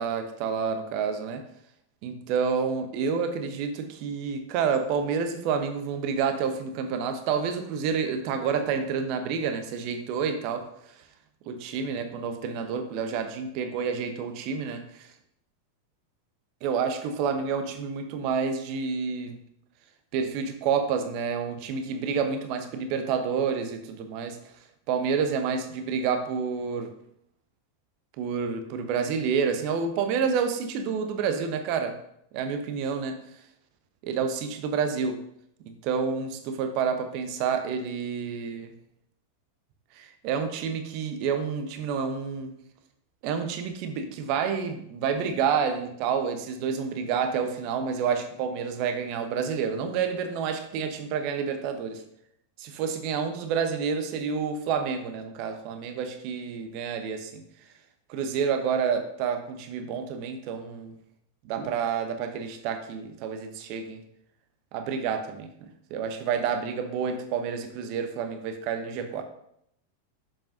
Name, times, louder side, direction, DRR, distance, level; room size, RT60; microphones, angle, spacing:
voice 1, 0.0-1.4 2.0-10.6 11.5-15.1 16.6-19.4 20.1-24.4 24.9-26.9 28.2-32.0 32.3-33.2 34.0-35.2 35.8-38.7 40.0-42.5 43.2-52.0 52.6-57.4 58.1-60.9 61.4-64.0 64.7-65.5 65.9-69.2, right 6 dB, 45° right, 8 dB, 0.8 m, -29 dB
7.5 x 7.0 x 2.6 m, 0.74 s
figure-of-eight pair, 90°, 0 cm